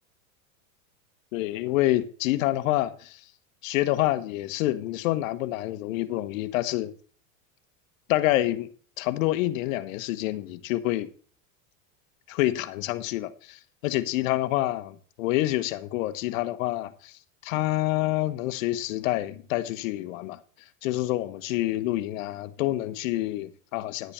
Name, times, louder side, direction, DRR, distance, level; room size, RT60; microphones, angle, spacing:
voice 1, 1.3-3.2 3.6-6.9 8.1-8.7 9.0-11.1 12.3-20.4 20.8-24.1, left 16 dB, 70° left, 1.3 m, -27 dB
10.5 x 9.7 x 4.4 m
supercardioid pair, 130°, 41 cm